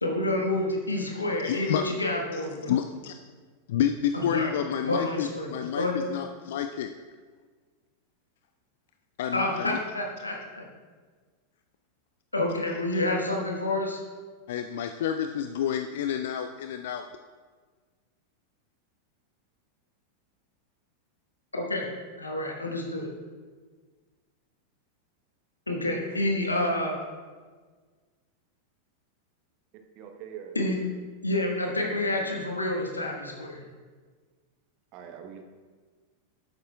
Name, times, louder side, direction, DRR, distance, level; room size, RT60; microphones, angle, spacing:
voice 1, 0.0-2.7 4.1-4.5 4.8-5.5 5.7-6.0 9.3-10.6 12.3-14.0 21.5-21.9 22.2-23.1 25.7-27.0 30.5-30.8 31.2-33.6, left 1 dB, 80° left, 1 dB, 1.3 m, -28 dB
voice 2, 1.4-1.9 2.3-2.4 2.7-3.1 3.7-7.0 9.2-9.8 14.5-17.1, left 9 dB, 55° left, 7 dB, 0.3 m, -29 dB
voice 3, 30.0-30.6 34.9-35.4, right 8 dB, 40° right, 5 dB, 0.9 m, -42 dB
11.5 x 8.4 x 2.3 m, 1.5 s
figure-of-eight pair, 90°, 0 cm